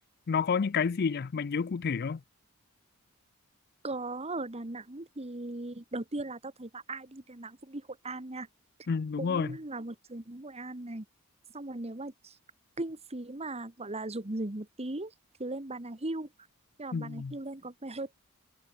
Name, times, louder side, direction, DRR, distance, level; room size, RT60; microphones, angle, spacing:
voice 1, 0.3-2.2 8.9-9.6 16.9-17.3, left 5 dB, 45° left, 0.4 m, -29 dB
voice 2, 3.8-8.5 9.2-11.0 11.5-12.4 12.8-15.1 15.4-16.3 16.8-18.1, right 2 dB, 30° right, 1.6 m, -38 dB
head